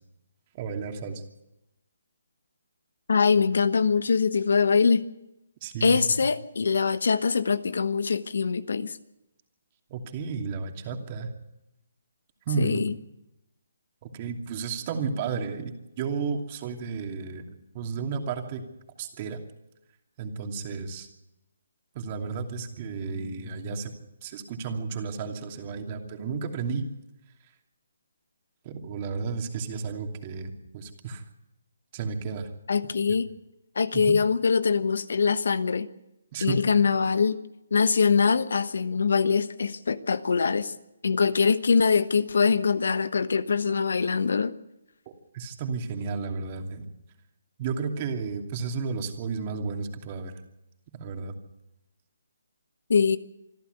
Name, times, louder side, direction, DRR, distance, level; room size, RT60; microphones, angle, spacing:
voice 1, 0.5-1.2 5.6-6.0 9.9-11.3 12.5-12.8 14.0-17.5 17.7-18.7 19.0-19.4 20.2-21.1 21.9-23.9 24.2-26.8 28.6-31.2 31.9-32.5 33.9-34.2 36.3-36.6 45.3-46.9 47.6-50.4 51.0-51.3, right 5 dB, 30° right, 4 dB, 2.8 m, -32 dB
voice 2, 3.1-5.0 5.8-9.0 12.6-13.0 32.7-33.3 33.7-35.9 36.4-37.4 37.7-40.7 41.0-44.5 52.9-53.2, left 5 dB, 75° left, 14 dB, 1.2 m, -23 dB
25.5 x 12.5 x 8.1 m, 0.91 s
hypercardioid pair, 155°, 0 cm